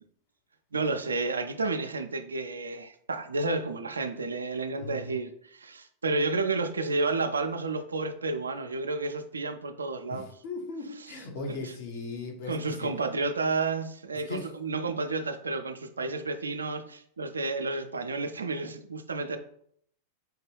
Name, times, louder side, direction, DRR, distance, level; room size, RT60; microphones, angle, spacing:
voice 1, 0.7-10.3 11.5-11.6 12.5-19.4, right 3 dB, 75° right, 8 dB, 0.3 m, -31 dB
voice 2, 4.7-5.2 10.1-12.9 14.1-14.5, left 3 dB, 50° left, 1 dB, 0.9 m, -38 dB
4.4 x 2.2 x 3.3 m, 0.66 s
figure-of-eight pair, 90°, 0 cm